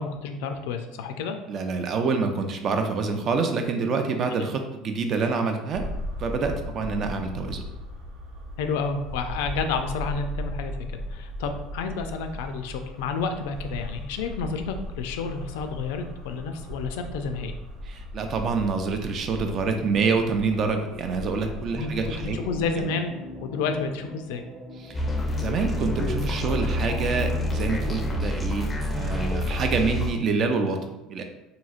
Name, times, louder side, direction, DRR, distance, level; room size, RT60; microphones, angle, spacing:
voice 1, 0.0-1.4 8.6-17.5 21.7-21.9 22.2-23.1 23.4-24.4, left 4 dB, 85° left, 6 dB, 0.3 m, -30 dB
voice 2, 1.5-5.9 6.2-7.6 17.8-22.4 24.8-25.0 25.4-28.7 29.0-31.2, right 4 dB, 45° right, 5 dB, 0.4 m, -27 dB
sound 1, 5.7-22.8, equal, 75° right, 1.3 m, -37 dB
sound 2, 19.4-28.4, left 1 dB, 30° right, 0.8 m, -43 dB
sound 3, 24.9-30.1, left 1 dB, 20° left, 0.4 m, -27 dB
3.0 x 2.6 x 2.4 m, 0.96 s
supercardioid pair, 110°, 0 cm